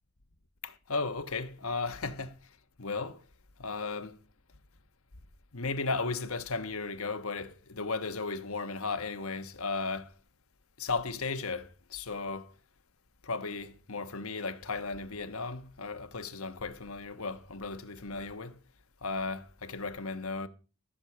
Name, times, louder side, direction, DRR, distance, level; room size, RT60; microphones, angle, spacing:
voice 1, 0.6-2.3 2.8-3.2 3.6-4.2 5.5-10.1 10.8-12.5 13.2-18.6 19.0-20.5, left 4 dB, 80° left, 1.2 m, -35 dB
14.0 x 6.5 x 7.3 m
head